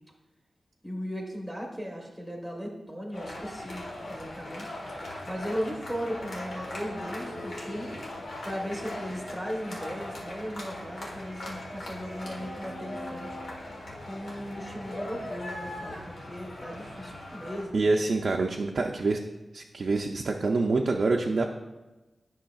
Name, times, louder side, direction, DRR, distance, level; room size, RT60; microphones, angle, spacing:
voice 1, 0.8-4.8 5.3-7.9 8.4-13.4 14.0-17.9, equal, 5° left, -1 dB, 1.0 m, -37 dB
sound 1, 3.1-17.6, left 1 dB, 90° left, 1.4 m, -39 dB
voice 2, 17.7-19.2 19.5-21.5, right 3 dB, 60° right, 1 dB, 0.4 m, -26 dB
10.0 x 5.6 x 2.3 m, 1.1 s
wide cardioid pair, 105°, 0 cm